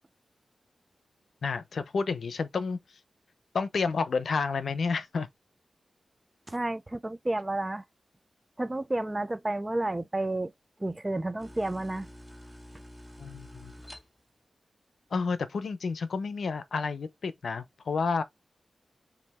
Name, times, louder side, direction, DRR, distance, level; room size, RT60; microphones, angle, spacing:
voice 1, 1.4-2.8 3.5-5.3 13.2-13.7 15.1-18.2, left 4 dB, 75° left, 0.7 m, -30 dB
voice 2, 6.5-7.8 8.6-10.5 10.8-12.1, right 2 dB, 20° right, 0.4 m, -31 dB
sound 1, 11.4-14.4, equal, 10° left, 2.3 m, -48 dB
5.2 x 2.6 x 3.5 m
wide cardioid pair, 100°, 0 cm